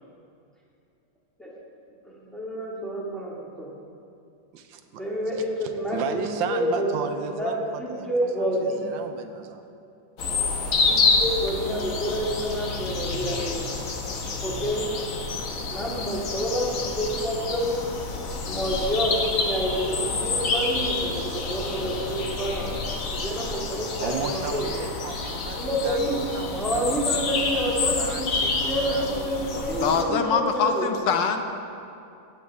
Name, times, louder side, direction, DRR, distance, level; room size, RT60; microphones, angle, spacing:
voice 1, 2.3-3.7 4.9-6.9 7.3-8.9 10.9-13.7 14.4-14.9 15.7-17.8 18.5-22.8 23.1-24.7 25.6-26.2 26.5-28.3 28.7-30.9, equal, ahead, -6 dB, 1.8 m, -28 dB
voice 2, 4.5-5.1 5.3-9.6 10.2-10.5 23.9-27.5 28.0-30.3, right 6 dB, 85° right, 7 dB, 1.5 m, -35 dB
sound 1, 10.2-30.0, left 4 dB, 55° left, 1.2 m, -28 dB
voice 3, 29.8-31.4, left 6 dB, 75° left, 6 dB, 1.4 m, -23 dB
16.0 x 8.4 x 3.6 m, 2.6 s
omnidirectional pair, 2.1 m